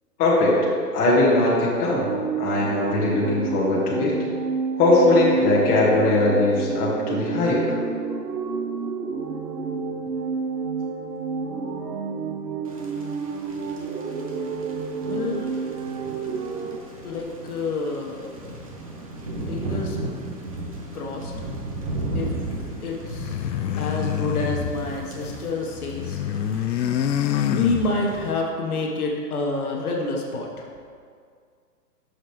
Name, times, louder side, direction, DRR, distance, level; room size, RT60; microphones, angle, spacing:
voice 1, 0.2-0.6 0.9-2.1 2.4-4.2 4.8-7.8, left 2 dB, 15° left, -6 dB, 1.3 m, -20 dB
sound 1, 1.9-16.8, right 4 dB, 70° right, 0.8 m, -29 dB
Thunder / Rain, 12.6-28.3, right 2 dB, 25° right, 0.5 m, -36 dB
voice 2, 15.0-15.5 17.0-18.6 19.5-20.0 20.9-21.3 22.1-22.3 22.8-23.3 23.8-26.2 27.5-30.7, left 3 dB, 60° left, 0 dB, 1.3 m, -28 dB
sound 2, 23.0-25.5 25.8-28.3, left 9 dB, 90° left, 0.6 m, -27 dB
8.9 x 6.5 x 3.1 m, 2.2 s
hypercardioid pair, 155°, 49 cm